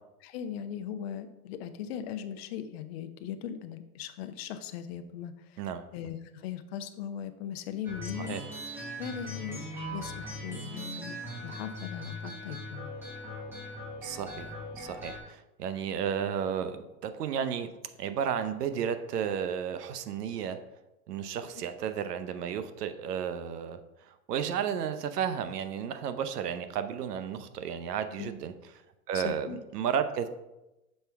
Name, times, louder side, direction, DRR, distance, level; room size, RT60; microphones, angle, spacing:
voice 1, 0.2-5.6 5.9-8.4 9.0-9.6 9.9-11.2 11.4-12.9 21.6-21.7 28.2-28.3 29.1-29.6, left 9 dB, 45° left, 9 dB, 0.5 m, -39 dB
sound 1, 7.8-15.2, equal, 5° right, 1.2 m, -40 dB
voice 2, 14.0-17.7 18.0-20.6 21.1-28.5 29.1-29.5 29.7-30.3, right 8 dB, 85° right, 10 dB, 0.8 m, -33 dB
6.6 x 3.4 x 4.6 m, 0.97 s
hypercardioid pair, 145°, 46 cm